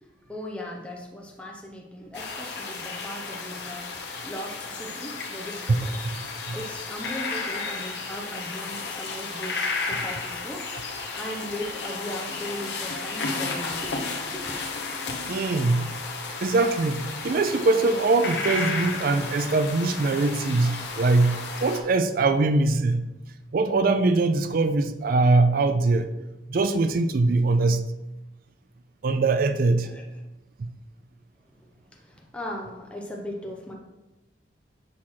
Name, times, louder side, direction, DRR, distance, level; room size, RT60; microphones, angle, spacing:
voice 1, 0.0-5.9 6.2-10.7 11.2-14.5 29.8-30.0 32.0-33.7, left 1 dB, 5° left, -1 dB, 0.6 m, -38 dB
sound 1, 2.1-21.8, left 4 dB, 60° left, 0.9 m, -33 dB
voice 2, 15.3-15.9 16.4-23.1 23.5-26.1 26.5-27.8 29.0-29.9 30.6-30.7, right 3 dB, 50° right, 9 dB, 0.4 m, -22 dB
6.4 x 3.1 x 5.7 m, 1.0 s
head